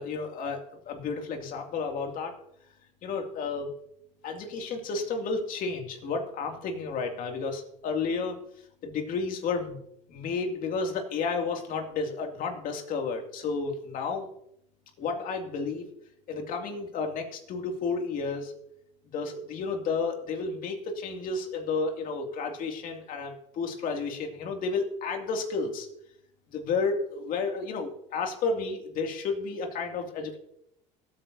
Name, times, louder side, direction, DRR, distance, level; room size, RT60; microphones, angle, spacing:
voice 1, 0.0-2.4 3.0-3.7 4.2-8.4 8.8-9.8 10.1-14.3 15.0-15.9 16.3-18.5 19.0-25.9 26.5-30.4, left 4 dB, 55° left, 3 dB, 2.4 m, -32 dB
18.5 x 9.0 x 2.7 m, 0.76 s
supercardioid pair, 95°, 17 cm